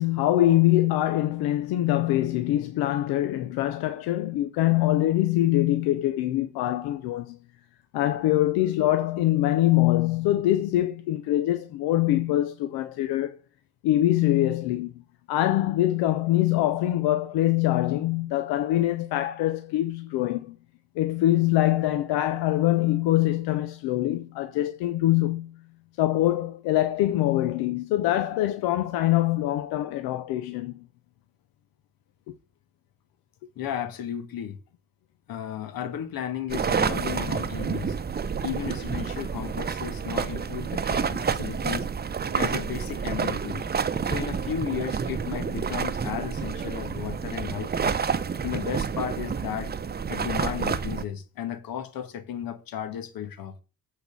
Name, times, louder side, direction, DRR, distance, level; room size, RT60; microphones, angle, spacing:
voice 1, 0.0-7.4 7.9-13.4 13.8-15.0 15.3-20.6 21.0-25.6 26.0-30.8 32.3-32.4, left 14 dB, 90° left, 0.8 m, -24 dB
voice 2, 33.6-34.6 35.3-38.0 38.4-41.9 42.4-43.6 44.0-48.0 48.4-49.7 50.1-53.5, left 9 dB, 70° left, 1.8 m, -34 dB
sound 1, 36.5-51.0, right 6 dB, 25° right, 0.8 m, -29 dB
8.2 x 4.6 x 6.8 m
cardioid pair, 85°, 36 cm